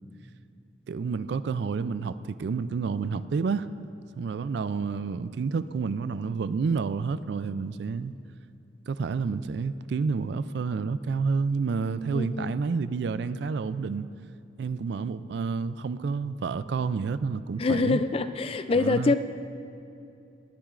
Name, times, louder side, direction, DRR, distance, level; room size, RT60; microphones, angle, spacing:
voice 1, 0.9-3.7 4.2-8.1 8.9-14.1 14.6-18.0 18.8-19.1, right 5 dB, 60° right, 14 dB, 0.3 m, -29 dB
voice 2, 12.1-12.5 17.6-19.1, left 3 dB, 30° left, 11 dB, 0.3 m, -25 dB
19.5 x 10.5 x 2.5 m, 2.6 s
head